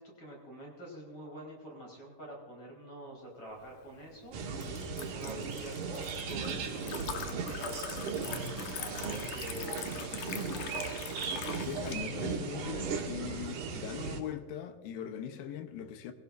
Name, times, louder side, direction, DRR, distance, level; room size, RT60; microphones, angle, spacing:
voice 1, 0.0-8.2 8.8-10.5, right 1 dB, 35° left, 5.5 m, -46 dB
Liquid, 3.6-12.0, left 9 dB, 70° left, 2.3 m, -43 dB
sound 1, 4.3-14.2, right 5 dB, 65° right, 2.7 m, -37 dB
voice 2, 11.6-16.1, left 9 dB, 90° left, 2.8 m, -40 dB
22.0 x 16.5 x 2.6 m
omnidirectional pair, 4.0 m